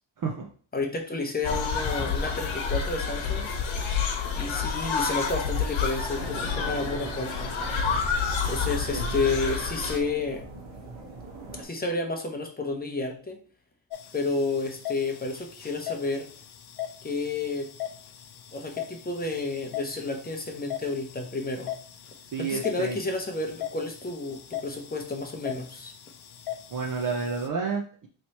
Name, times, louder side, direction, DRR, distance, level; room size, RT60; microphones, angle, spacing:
voice 1, 0.2-0.5 8.9-9.1 22.3-23.0 26.7-28.1, right 5 dB, 45° right, 1 dB, 0.6 m, -30 dB
voice 2, 0.7-3.5 4.4-7.5 8.5-10.4 11.6-13.4 14.1-16.3 17.0-17.7 18.5-21.7 22.5-25.9, left 3 dB, 20° left, 3 dB, 0.7 m, -31 dB
sound 1, 1.4-10.0, left 5 dB, 75° left, 1.0 m, -29 dB
sound 2, 6.2-11.6, right 2 dB, 75° right, 1.3 m, -41 dB
sound 3, 13.9-27.5, left 11 dB, 55° left, 0.6 m, -40 dB
3.2 x 3.0 x 4.1 m, 0.43 s
wide cardioid pair, 135°, 47 cm